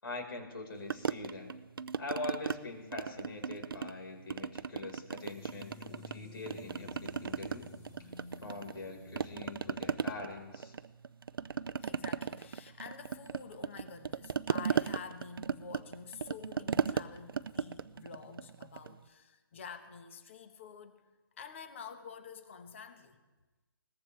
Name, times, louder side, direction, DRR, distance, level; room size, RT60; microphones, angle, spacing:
voice 1, 0.0-1.5 2.0-7.7 8.0-8.1 8.4-10.7, left 2 dB, 75° left, 2 dB, 4.8 m, -43 dB
sound 1, 0.9-2.6 2.9-4.0 4.3-6.2 6.5-8.9 9.2-19.0, right 6 dB, 70° right, 0.6 m, -36 dB
sound 2, 5.2-10.4, left 3 dB, 15° left, 3.0 m, -53 dB
voice 2, 11.8-21.0 21.4-23.2, left 6 dB, 30° left, 8 dB, 1.3 m, -48 dB
21.5 x 19.5 x 3.4 m, 1.2 s
hypercardioid pair, 170°, 12 cm